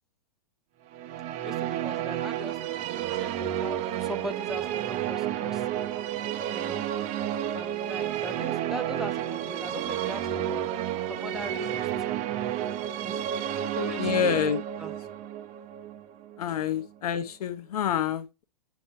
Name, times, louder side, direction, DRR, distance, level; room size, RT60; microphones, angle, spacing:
sound 1, 0.9-17.0, right 11 dB, 35° right, 0.8 m, -31 dB
voice 1, 1.4-2.6 3.2-5.7 6.5-6.9 7.5-10.6 11.1-12.2 13.0-14.1 14.8-14.9, equal, ahead, 0.5 m, -40 dB
voice 2, 14.0-14.6 16.4-18.4, left 8 dB, 65° left, 0.9 m, -27 dB
8.1 x 3.2 x 5.5 m
hypercardioid pair, 110°, 21 cm